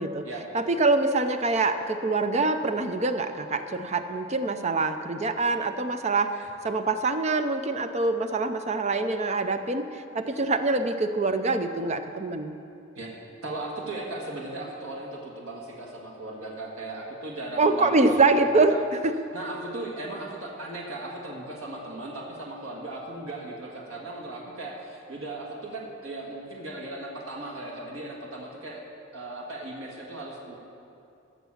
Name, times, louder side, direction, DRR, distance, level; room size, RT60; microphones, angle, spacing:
voice 1, 0.5-6.4 6.6-12.5 17.6-18.8 19.0-19.1, right 3 dB, 35° right, 8 dB, 0.5 m, -25 dB
voice 2, 13.4-18.8 19.3-28.8 29.1-30.6, right 2 dB, 80° right, -2 dB, 1.7 m, -37 dB
14.5 x 6.1 x 7.2 m, 2.6 s
head